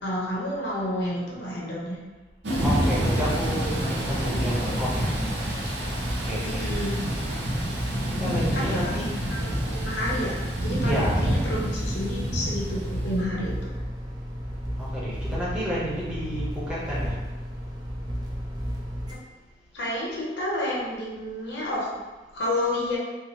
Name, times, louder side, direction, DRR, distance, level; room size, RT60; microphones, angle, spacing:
voice 1, 0.0-2.0 6.4-6.9 8.5-13.7 19.7-21.9 22.3-23.0, left 1 dB, 80° left, -4 dB, 0.7 m, -30 dB
Thunder / Rain, 2.4-13.2, right 1 dB, 85° right, 0.6 m, -28 dB
sound 1, 2.5-19.2, equal, 25° right, 0.4 m, -33 dB
voice 2, 2.6-5.1 6.2-6.8 8.0-9.1 10.8-11.6 14.8-17.1, equal, 5° right, -9 dB, 0.8 m, -31 dB
3.0 x 2.3 x 2.8 m, 1.2 s
head